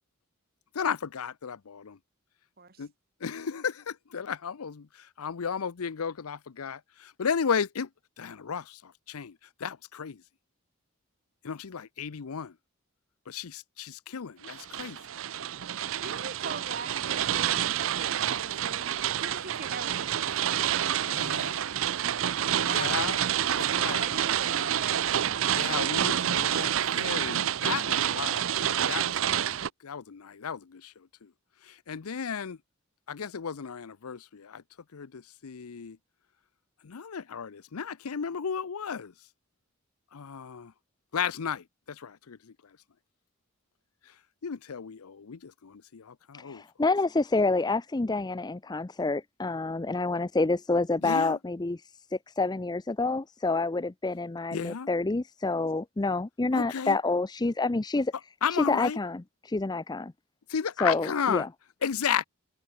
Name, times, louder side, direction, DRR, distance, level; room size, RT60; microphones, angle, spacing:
voice 1, 0.7-2.0 2.8-2.9 3.2-7.9 8.2-10.2 11.4-12.5 13.3-15.0 21.1-21.5 22.6-23.2 23.5-24.1 25.5-28.5 28.9-29.4 29.8-31.3 31.6-32.6 33.1-34.6 34.9-36.0 36.8-39.1 40.1-40.7 41.1-42.5 44.4-46.6 51.0-51.4 54.5-54.9 56.5-57.0 58.4-59.0 60.5-61.5 61.8-62.2, left 7 dB, 85° left, 0.6 m, -34 dB
sound 1, 14.4-29.7, right 10 dB, 65° right, 0.5 m, -28 dB
voice 2, 16.0-18.9 19.2-20.6 22.7-25.0, right 4 dB, 45° right, 2.4 m, -42 dB
voice 3, 46.3-51.8 52.1-58.1 58.5-60.1 60.8-61.5, left 3 dB, 20° left, 0.5 m, -28 dB
head